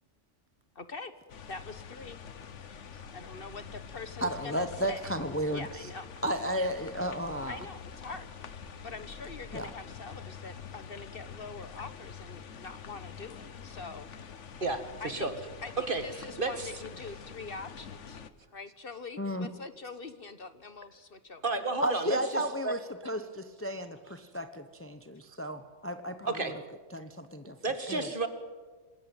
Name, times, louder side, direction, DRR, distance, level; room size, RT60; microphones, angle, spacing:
voice 1, 0.7-1.1 1.5-2.2 3.1-5.2 5.5-6.1 7.5-8.3 8.8-14.1 15.0-15.3 15.6-18.2 18.5-21.4, left 4 dB, 50° left, 12 dB, 1.4 m, -44 dB
sound 1, 1.3-18.3, left 7 dB, 75° left, 1.5 m, -46 dB
voice 2, 4.2-5.7 6.2-7.7 9.5-9.7 19.2-19.5 21.8-26.5 26.9-27.6 27.9-28.1, equal, 10° left, 9 dB, 1.0 m, -33 dB
voice 3, 14.6-15.3 15.9-16.0 16.4-16.7 21.4-22.8 26.3-26.5 27.6-28.3, right 3 dB, 45° right, 9 dB, 2.1 m, -32 dB
26.5 x 20.0 x 9.1 m, 1.4 s
omnidirectional pair, 1.3 m